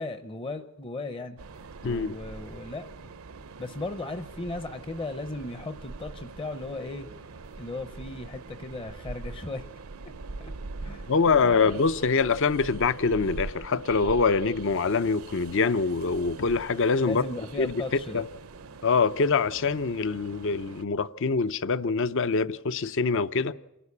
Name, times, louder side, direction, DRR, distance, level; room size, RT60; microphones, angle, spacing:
voice 1, 0.0-1.4 1.8-2.9 3.6-7.1 7.6-9.6 10.4-10.5 10.8-11.8 17.0-18.2, left 2 dB, 25° left, 0.7 m, -36 dB
Train, 1.4-20.9, right 3 dB, 75° right, 0.7 m, -43 dB
voice 2, 1.8-2.2 11.1-17.2 17.6-17.8 18.1-18.3 18.8-23.5, left 4 dB, 60° left, 0.6 m, -24 dB
27.5 x 11.0 x 8.4 m
head